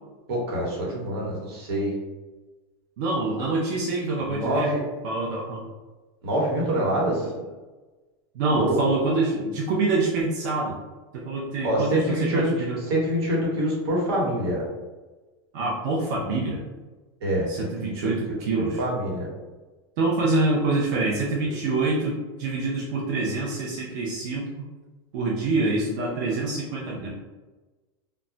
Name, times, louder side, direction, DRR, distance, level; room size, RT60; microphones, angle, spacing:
voice 1, 0.3-1.9 4.3-4.8 6.2-7.3 8.5-8.8 11.6-14.6 17.2-18.1 18.6-19.3, right 1 dB, 80° right, -3 dB, 1.1 m, -25 dB
voice 2, 3.0-4.7 5.0-5.6 8.3-10.7 11.1-12.8 15.5-16.6 17.5-18.8 20.0-24.5 25.1-27.1, right 3 dB, 45° right, -3 dB, 0.4 m, -26 dB
2.2 x 2.0 x 3.7 m, 1.2 s
supercardioid pair, 175°, 13 cm